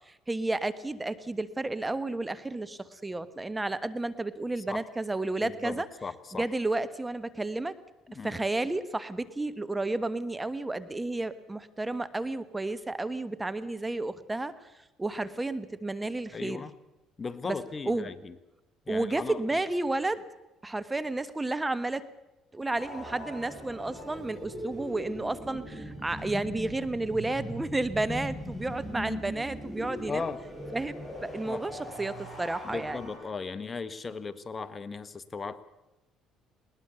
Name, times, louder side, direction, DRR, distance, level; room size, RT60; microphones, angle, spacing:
voice 1, 0.1-5.8 6.4-7.7 8.2-14.5 15.0-16.6 17.5-17.6 17.9-18.1 18.9-20.2 20.6-22.0 22.5-30.3 30.7-33.0, right 2 dB, 15° right, 14 dB, 1.3 m, -32 dB
voice 2, 5.4-6.5 8.1-8.4 16.3-16.7 17.2-18.3 18.9-19.4 30.1-30.4 31.5-31.6 32.6-35.6, left 4 dB, 30° left, 14 dB, 1.3 m, -37 dB
sound 1, 22.7-33.2, equal, 5° left, 7.8 m, -40 dB
21.0 x 19.5 x 6.9 m, 0.99 s
supercardioid pair, 80°, 0 cm